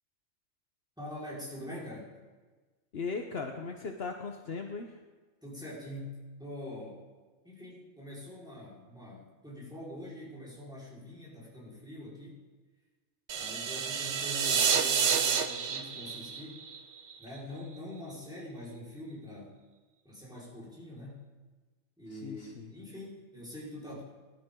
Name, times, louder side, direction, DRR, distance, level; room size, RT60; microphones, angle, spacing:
voice 1, 1.0-2.1 5.4-7.0 7.4-12.4 13.3-16.6 17.2-19.5 20.0-21.3 22.0-24.0, left 1 dB, 5° right, -7 dB, 4.7 m, -44 dB
voice 2, 2.9-4.9 22.1-22.7, left 4 dB, 60° left, 3 dB, 1.1 m, -38 dB
sound 1, 13.3-17.4, right 6 dB, 70° right, 1.1 m, -29 dB
20.0 x 12.0 x 3.8 m, 1.3 s
omnidirectional pair, 1.2 m